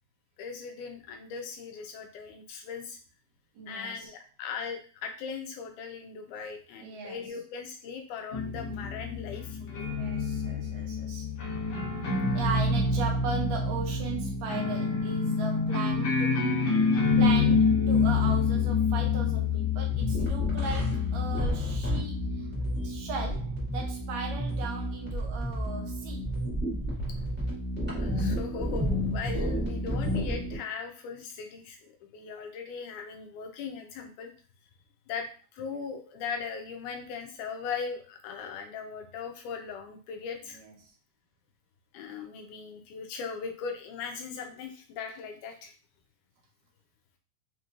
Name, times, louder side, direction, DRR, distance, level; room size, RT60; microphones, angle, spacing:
voice 1, 0.4-3.0 3.7-9.9 28.0-34.3 35.1-40.6 41.9-45.7, left 6 dB, 85° left, 4 dB, 2.2 m, -39 dB
voice 2, 3.6-4.1 6.8-7.3 9.9-11.3 12.3-16.5 17.2-22.5 22.8-26.2 40.6-40.7, right 4 dB, 75° right, 2 dB, 1.6 m, -37 dB
sound 1, 8.3-23.7, left 4 dB, 60° left, 2.0 m, -27 dB
sound 2, 19.9-30.6, equal, 5° right, 0.9 m, -31 dB
5.4 x 3.0 x 2.5 m, 0.38 s
omnidirectional pair, 3.5 m